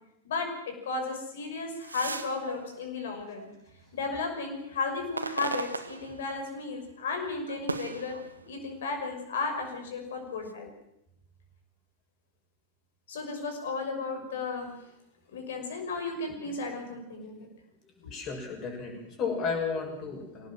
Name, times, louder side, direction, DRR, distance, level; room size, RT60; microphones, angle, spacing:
voice 1, 0.2-3.5 3.9-8.2 8.5-10.7 13.1-14.8 15.3-17.5, left 3 dB, 60° left, 4 dB, 6.0 m, -34 dB
sound 1, 1.6-3.9 4.4-6.7 7.1-8.9 9.6-10.5, right 3 dB, 80° right, 1.3 m, -39 dB
voice 2, 18.0-20.5, left 5 dB, 35° left, 3 dB, 6.9 m, -33 dB
24.0 x 18.5 x 7.6 m, 0.80 s
figure-of-eight pair, 90°, 0 cm